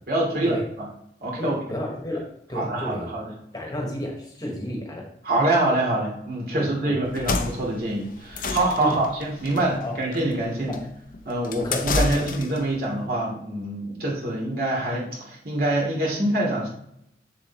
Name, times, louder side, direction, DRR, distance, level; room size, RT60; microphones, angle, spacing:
voice 1, 0.1-0.9 1.2-1.6 2.5-3.3 5.2-10.8 11.2-16.7, right 1 dB, 55° right, -3 dB, 2.8 m, -25 dB
voice 2, 1.4-3.1 3.5-5.1 6.5-7.0 8.8-9.0 9.8-10.0 10.6-10.8 11.6-12.2, left 1 dB, 20° left, 0 dB, 1.3 m, -32 dB
sound 1, 7.1-12.7, left 3 dB, 50° left, 0.7 m, -30 dB
7.4 x 7.2 x 3.0 m, 0.74 s
head